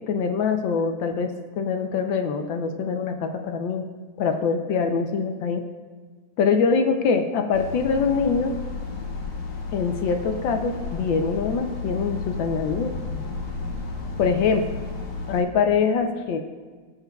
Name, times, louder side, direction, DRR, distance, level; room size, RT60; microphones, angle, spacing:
voice 1, 0.1-3.9 4.2-5.6 6.4-8.5 9.7-13.0 14.2-14.8 15.3-16.4, left 5 dB, 70° left, 6 dB, 1.3 m, -24 dB
sound 1, 7.5-15.4, left 4 dB, 85° left, 2.3 m, -33 dB
18.5 x 7.3 x 2.3 m, 1.5 s
omnidirectional pair, 2.3 m